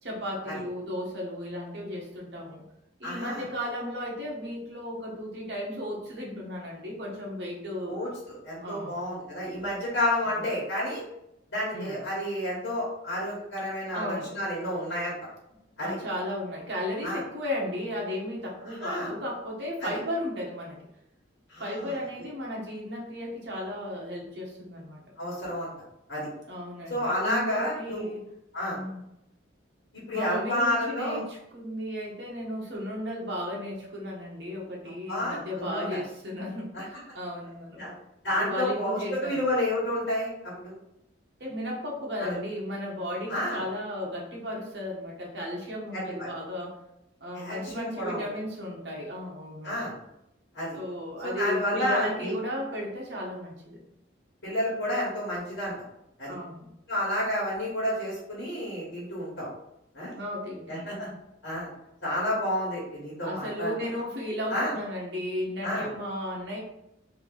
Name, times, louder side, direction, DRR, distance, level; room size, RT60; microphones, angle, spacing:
voice 1, 0.0-2.6 3.0-8.0 8.6-8.9 10.3-10.4 11.7-12.0 13.9-14.3 15.8-20.8 21.6-25.1 26.5-28.3 28.7-29.0 30.1-37.9 38.4-39.5 41.4-46.8 47.2-49.9 50.7-53.8 56.3-56.7 60.1-61.0 63.2-66.6, left 1 dB, 60° right, -2 dB, 1.2 m, -35 dB
voice 2, 3.0-3.4 7.9-11.0 11.5-15.1 15.8-16.0 17.0-17.2 18.6-19.1 19.8-20.0 21.5-22.0 25.2-25.7 26.1-26.3 26.9-28.1 28.5-28.8 29.9-31.2 35.1-36.0 36.7-36.8 37.8-37.9 38.2-40.8 42.2-42.4 43.3-43.6 45.9-46.3 47.3-48.2 49.6-49.9 50.5-50.8 51.2-52.3 54.4-55.7 56.2-56.3 56.9-59.5 59.9-60.1 60.7-61.1 61.4-61.7 62.0-63.7 64.5-64.7 65.6-65.9, left 1 dB, 70° left, -6 dB, 1.5 m, -30 dB
3.5 x 2.8 x 3.9 m, 0.84 s
head